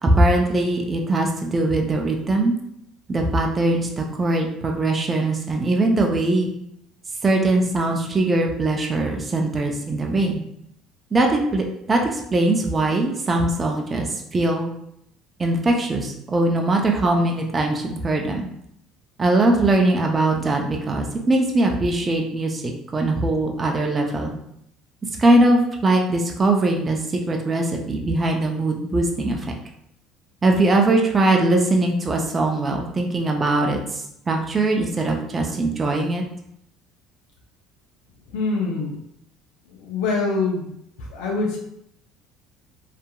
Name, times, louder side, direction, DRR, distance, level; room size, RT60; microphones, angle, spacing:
voice 1, 0.0-2.5 3.1-6.5 7.2-10.4 11.1-14.7 15.4-18.5 19.2-22.6 22.9-24.3 25.2-29.4 30.4-36.2, right 2 dB, 25° right, 1 dB, 0.4 m, -21 dB
voice 2, 38.3-39.0 39.7-40.7 41.0-41.6, left 3 dB, 80° left, -1 dB, 0.5 m, -24 dB
2.8 x 2.4 x 2.2 m, 0.74 s
supercardioid pair, 90°, 0 cm